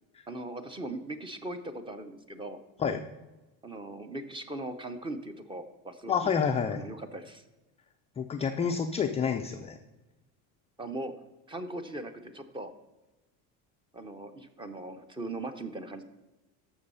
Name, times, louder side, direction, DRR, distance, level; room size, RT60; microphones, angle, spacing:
voice 1, 0.3-2.6 3.6-6.3 6.7-7.4 10.8-11.1 11.5-12.7 13.9-16.0, right 2 dB, 15° right, 10 dB, 0.7 m, -39 dB
voice 2, 6.1-6.8 8.2-9.8, left 6 dB, 20° left, 5 dB, 0.3 m, -28 dB
13.0 x 6.2 x 5.5 m, 1.1 s
cardioid pair, 145°, 40 cm